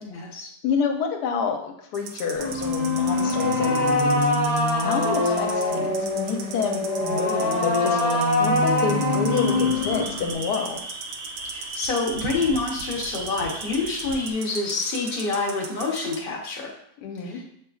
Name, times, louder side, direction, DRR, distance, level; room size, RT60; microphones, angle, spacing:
voice 1, 0.0-0.5 11.5-16.7 17.2-17.4, left 3 dB, 40° left, -1 dB, 1.0 m, -27 dB
voice 2, 0.6-4.3 4.7-10.8 17.0-17.4, left 5 dB, 75° left, 4 dB, 1.2 m, -28 dB
sound 1, 1.9-16.2, right 6 dB, 90° right, 1.2 m, -40 dB
sound 2, 2.4-10.3, left 2 dB, 60° left, 0.4 m, -23 dB
sound 3, 9.3-14.3, right 2 dB, 70° right, 1.0 m, -36 dB
6.9 x 3.2 x 2.3 m, 0.71 s
omnidirectional pair, 1.8 m